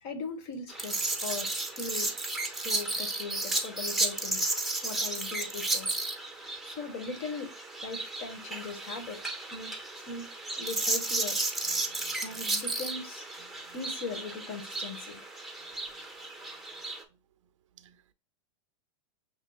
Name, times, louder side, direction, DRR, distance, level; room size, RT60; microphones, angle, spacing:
voice 1, 0.0-2.1 2.5-4.5 4.8-5.9 6.6-7.5 7.8-9.2 9.5-9.7 10.1-10.3 10.6-11.4 12.2-13.3 13.7-15.2, left 4 dB, 55° left, 1.5 m, -39 dB
sound 1, 0.7-17.0, right 2 dB, ahead, 0.8 m, -33 dB
voice 2, 11.7-12.2 13.5-13.8 17.8-18.1, right 7 dB, 80° right, 0.6 m, -59 dB
6.4 x 2.9 x 2.3 m
hypercardioid pair, 125°, 16 cm